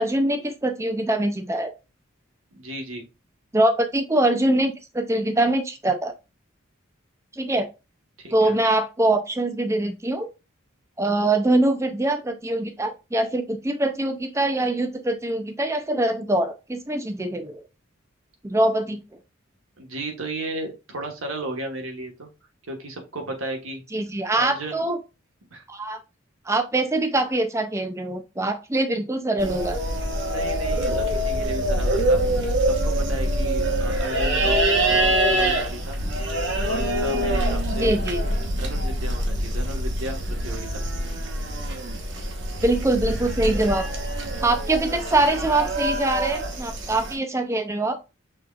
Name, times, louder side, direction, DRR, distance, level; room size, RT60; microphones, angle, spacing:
voice 1, 0.0-1.7 3.5-6.1 7.4-7.7 8.3-10.3 11.0-17.6 18.4-19.0 23.9-25.0 25.7-26.0 26.5-29.8 37.8-38.2 42.6-43.9 44.4-48.0, right 1 dB, 15° right, 8 dB, 0.6 m, -23 dB
voice 2, 2.5-3.0 8.2-8.6 19.8-22.3 22.7-23.8 24.3-24.9 25.5-25.6 30.3-32.2 32.8-36.0 36.7-38.0 38.5-40.8, right 1 dB, 85° right, 3 dB, 1.4 m, -34 dB
sound 1, 29.4-47.1, right 1 dB, 60° right, 1.1 m, -25 dB
6.1 x 3.7 x 2.4 m, 0.28 s
head